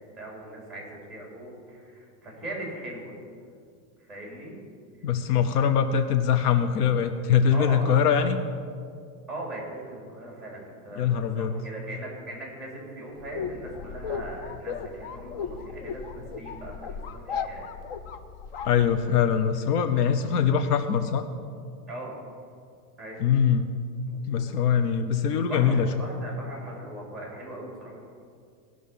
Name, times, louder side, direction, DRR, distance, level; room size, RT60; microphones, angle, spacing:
voice 1, 0.1-3.1 4.0-4.6 4.9-5.1 5.6-5.7 7.5-8.0 9.3-17.7 21.9-22.2 23.0-23.2 24.1-24.4 25.3-28.0, right 1 dB, ahead, -3 dB, 3.5 m, -40 dB
voice 2, 5.0-8.4 11.0-11.5 18.6-21.2 23.2-23.7 24.3-25.9, left 7 dB, 70° left, 8 dB, 0.8 m, -23 dB
sound 1, 13.2-19.4, left 6 dB, 40° left, 0.4 m, -36 dB
18.0 x 6.3 x 5.5 m, 2.3 s
supercardioid pair, 170°, 48 cm